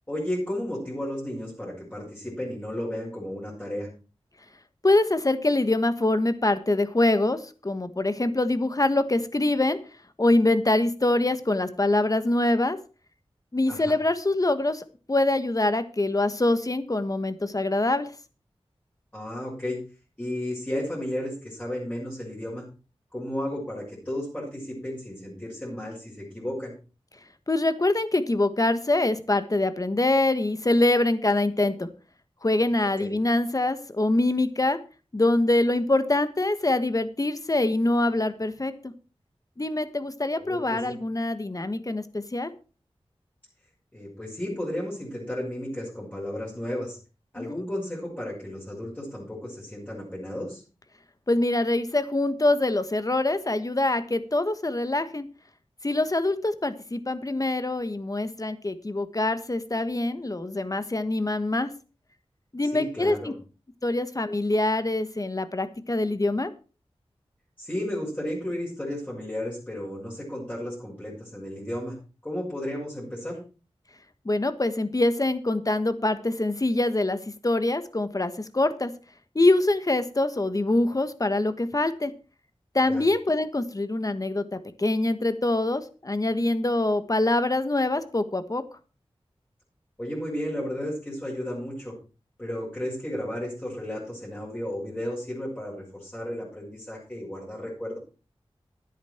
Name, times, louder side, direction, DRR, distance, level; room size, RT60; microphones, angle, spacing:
voice 1, 0.1-3.9 13.7-14.0 19.1-19.8 20.2-22.6 23.1-26.7 33.0-33.1 40.4-41.0 43.9-47.0 47.3-50.6 62.6-63.3 67.6-72.0 72.2-73.4 82.9-83.0 90.0-91.9 92.4-98.0, left 1 dB, 15° left, -5 dB, 6.3 m, -33 dB
voice 2, 4.8-9.8 10.2-12.8 13.5-18.1 27.5-31.9 32.4-34.8 35.1-38.9 39.6-42.5 47.4-47.7 51.3-55.3 55.8-61.7 62.5-63.3 63.8-66.5 74.2-77.2 77.4-78.9 79.3-82.1 82.7-88.6, left 2 dB, 35° left, 11 dB, 1.5 m, -24 dB
12.5 x 10.5 x 4.5 m, 0.35 s
wide cardioid pair, 75°, 10 cm